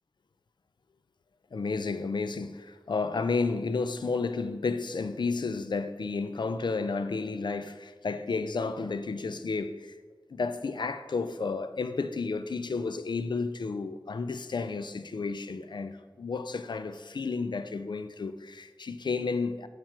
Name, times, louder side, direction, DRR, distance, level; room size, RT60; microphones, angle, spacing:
voice 1, 1.5-10.0 10.3-19.7, left 4 dB, 70° left, 0.5 m, -32 dB
7.6 x 4.4 x 6.0 m
cardioid pair, 45°, 8 cm